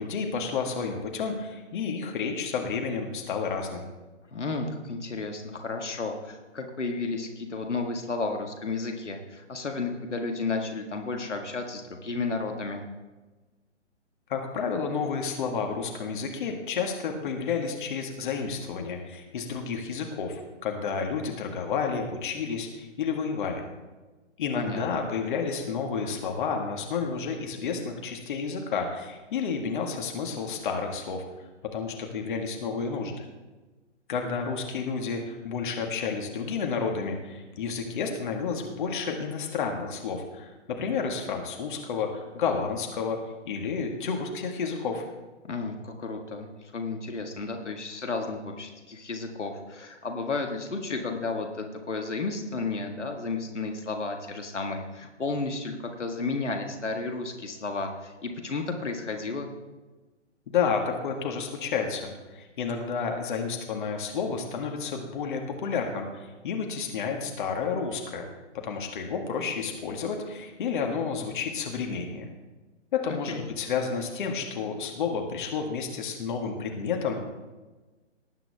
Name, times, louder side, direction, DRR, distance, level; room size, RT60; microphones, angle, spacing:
voice 1, 0.0-3.8 14.3-23.6 24.4-31.2 31.7-33.2 34.1-43.2 43.5-45.0 60.5-68.3 68.5-72.3 72.9-77.2, left 5 dB, 45° left, 3 dB, 2.0 m, -31 dB
voice 2, 4.3-12.8 24.5-24.8 45.4-59.5 73.3-73.4, left 3 dB, 75° left, 4 dB, 1.9 m, -32 dB
18.5 x 9.1 x 3.6 m, 1.2 s
figure-of-eight pair, 130°, 36 cm